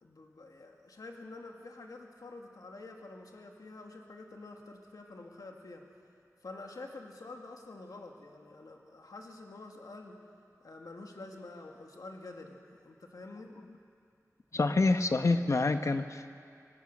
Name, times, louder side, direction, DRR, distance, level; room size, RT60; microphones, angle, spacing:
voice 1, 0.0-5.8 6.4-10.1 10.6-13.5, left 2 dB, 85° left, 2 dB, 2.1 m, -48 dB
voice 2, 14.5-16.4, left 3 dB, 55° left, 8 dB, 1.1 m, -27 dB
25.5 x 19.0 x 6.6 m, 2.4 s
wide cardioid pair, 85°, 6 cm